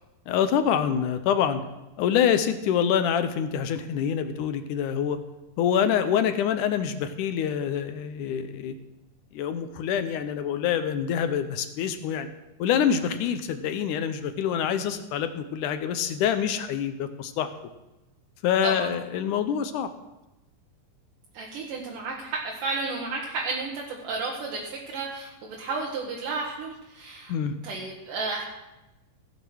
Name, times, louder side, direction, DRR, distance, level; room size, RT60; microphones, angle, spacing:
voice 1, 0.3-1.6 2.0-5.2 5.6-8.8 9.3-12.3 12.6-17.5 18.4-19.9 27.3-27.5, left 8 dB, 75° left, 9 dB, 2.1 m, -26 dB
voice 2, 21.3-27.3 27.6-28.4, right 3 dB, 75° right, -3 dB, 3.0 m, -32 dB
16.0 x 7.1 x 6.2 m, 1.0 s
omnidirectional pair, 3.9 m